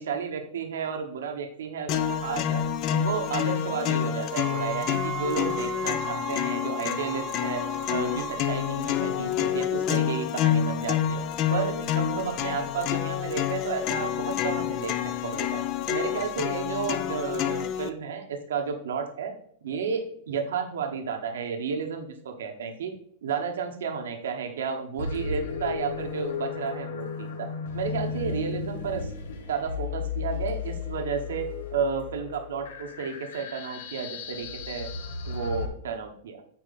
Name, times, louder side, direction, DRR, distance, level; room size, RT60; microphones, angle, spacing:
voice 1, 0.0-2.6 2.9-7.6 7.9-11.2 11.5-19.3 19.6-22.9 23.2-27.5 27.7-29.1 29.5-31.5 31.7-34.9 35.2-36.4, right 6 dB, 85° right, 4 dB, 1.2 m, -32 dB
sound 1, 1.9-17.9, left 10 dB, 40° left, 0.6 m, -28 dB
Wind instrument woodwind instrument, 4.3-8.8, right 5 dB, 30° right, 0.7 m, -36 dB
sound 2, 25.0-35.7, left 5 dB, 80° left, 1.3 m, -34 dB
8.8 x 4.4 x 4.1 m, 0.67 s
supercardioid pair, 135°, 0 cm